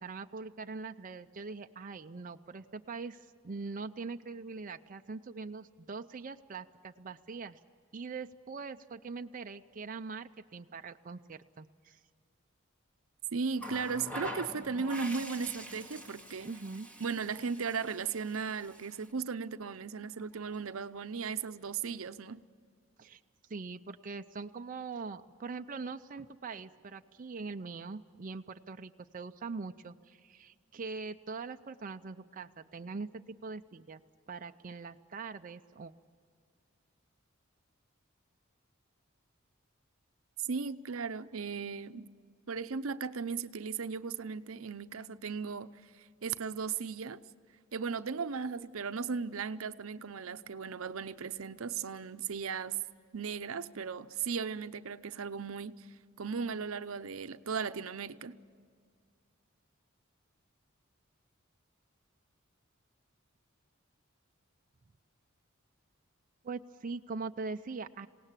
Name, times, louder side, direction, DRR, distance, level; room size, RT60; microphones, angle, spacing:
voice 1, 0.0-7.6 7.9-12.0 16.4-16.9 23.0-23.2 23.5-34.0 34.3-35.9 66.4-68.1, right 4 dB, 40° right, 0.5 m, -42 dB
voice 2, 13.3-16.5 17.0-22.4 40.4-42.1 42.5-45.8 46.2-47.2 47.7-52.8 53.1-55.9 56.2-58.4, right 5 dB, 80° right, 0.7 m, -36 dB
Water tap faucet, 13.6-19.1 20.3-20.5, equal, 5° left, 2.1 m, -45 dB
27.0 x 18.0 x 7.4 m
head